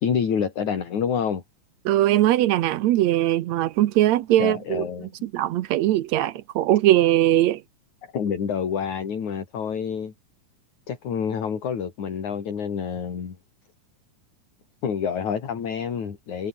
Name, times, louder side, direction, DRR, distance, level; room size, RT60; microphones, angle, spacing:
voice 1, 0.0-1.4 4.4-5.1 8.1-10.1 10.9-13.4 14.8-16.5, left 7 dB, 60° left, 4.5 m, -27 dB
voice 2, 1.9-4.8 5.2-7.6, right 14 dB, 70° right, 1.8 m, -20 dB
omnidirectional pair, 3.9 m